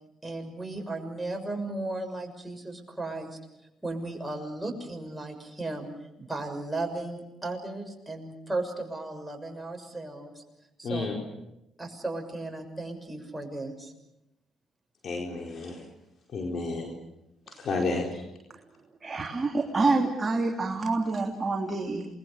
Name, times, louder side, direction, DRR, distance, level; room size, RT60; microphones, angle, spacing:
voice 1, 0.2-3.3 3.8-5.9 6.2-10.4 10.8-11.1 11.8-13.9, right 2 dB, 10° right, 3 dB, 6.6 m, -35 dB
voice 2, 10.8-11.1 15.0-15.8 16.3-16.9 17.5-18.2, left 3 dB, 60° left, 1 dB, 4.5 m, -31 dB
voice 3, 19.0-22.1, right 3 dB, 30° right, 0 dB, 3.3 m, -27 dB
28.0 x 21.5 x 6.7 m, 0.88 s
supercardioid pair, 65°, 0 cm